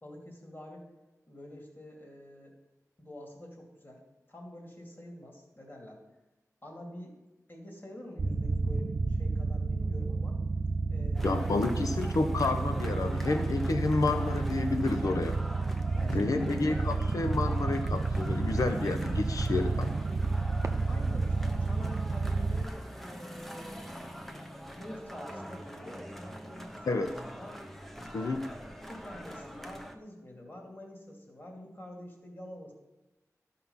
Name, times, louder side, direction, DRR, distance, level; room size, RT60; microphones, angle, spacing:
voice 1, 0.0-0.9 1.3-2.5 3.0-4.0 4.3-6.0 6.6-7.1 7.5-10.4 10.9-11.5 15.9-16.5 20.9-23.9 24.8-27.6 27.9-32.7, left 1 dB, 35° left, 0 dB, 2.5 m, -47 dB
sound 1, 8.2-22.7, right 3 dB, 60° right, 0.6 m, -31 dB
voice 2, 11.0-15.3 16.1-19.9 26.9-27.1 28.1-28.4, left 3 dB, 85° left, 7 dB, 0.7 m, -30 dB
sound 2, 11.1-29.9, equal, 5° left, 0.8 m, -44 dB
13.0 x 5.9 x 5.6 m, 1.1 s
wide cardioid pair, 80°, 6 cm